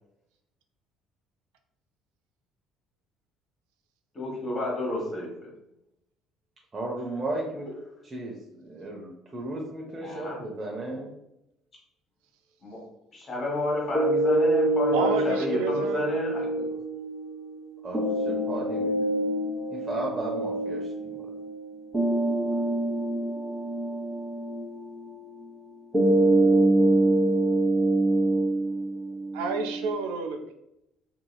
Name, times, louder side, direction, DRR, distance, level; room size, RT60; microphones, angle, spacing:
voice 1, 4.1-5.5 10.0-10.4 12.6-12.8 13.1-16.8 22.5-22.7, left 2 dB, 40° left, -3 dB, 1.5 m, -31 dB
voice 2, 6.7-7.7 8.0-11.1 17.8-19.1 19.7-21.3, right 2 dB, 30° right, -3 dB, 0.6 m, -35 dB
sound 1, 13.9-29.9, right 1 dB, 5° right, 1.0 m, -26 dB
voice 3, 14.9-16.0 29.3-30.5, right 4 dB, 80° right, 6 dB, 0.3 m, -30 dB
2.8 x 2.8 x 2.3 m, 0.84 s
hypercardioid pair, 65°, 0 cm